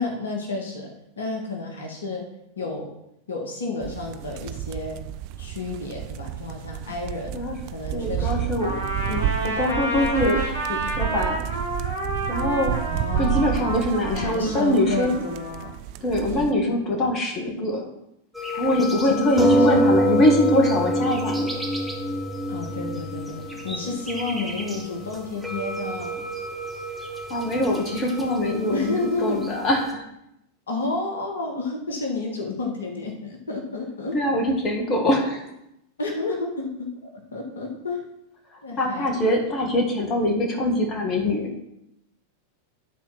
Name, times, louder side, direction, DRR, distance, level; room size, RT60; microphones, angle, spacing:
voice 1, 0.0-2.2 2.6-2.9 3.3-5.0 5.4-7.4 7.7-8.5 12.9-13.8 14.1-15.7 16.3-16.6 19.0-20.1 22.5-26.3 28.7-29.4 30.7-34.2 36.0-38.1 38.6-39.1, left 3 dB, 65° left, 1 dB, 1.8 m, -31 dB
sound 1, 3.8-16.5, right 12 dB, 45° right, 0.5 m, -31 dB
voice 2, 7.9-8.8 9.1-11.4 12.3-12.7 13.2-15.2 16.0-17.9 18.5-21.6 27.3-30.0 34.1-35.4 38.8-41.5, left 1 dB, 30° left, 1 dB, 1.9 m, -23 dB
Trumpet, 8.6-15.7, right 1 dB, 80° right, 2.1 m, -30 dB
sound 2, 18.3-29.9, equal, 5° right, 2.1 m, -26 dB
11.0 x 4.4 x 5.9 m, 0.82 s
figure-of-eight pair, 90°, 0 cm